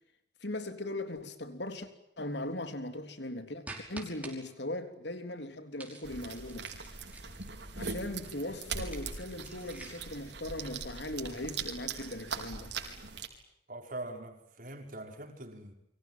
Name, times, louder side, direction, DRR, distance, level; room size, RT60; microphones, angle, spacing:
voice 1, 0.4-1.9 2.2-6.7 7.8-12.8, left 1 dB, 65° left, 3.6 m, -39 dB
sound 1, 3.7-4.4 5.8-7.7 8.7-10.2, right 2 dB, 10° right, 5.5 m, -47 dB
sound 2, 6.0-13.3, right 5 dB, 65° right, 4.7 m, -41 dB
voice 2, 13.7-15.7, right 2 dB, 45° right, 5.1 m, -43 dB
30.0 x 25.0 x 7.7 m
head